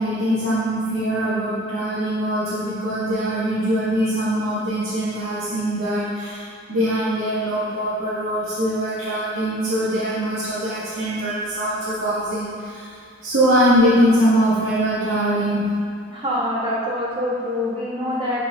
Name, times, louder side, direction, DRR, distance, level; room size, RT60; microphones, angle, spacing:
voice 1, 0.0-6.4 6.7-12.9 13.2-15.6, equal, 85° right, -12 dB, 1.9 m, -22 dB
voice 2, 16.1-18.5, left 1 dB, 25° right, -7 dB, 1.9 m, -25 dB
12.0 x 4.8 x 3.8 m, 2.2 s
head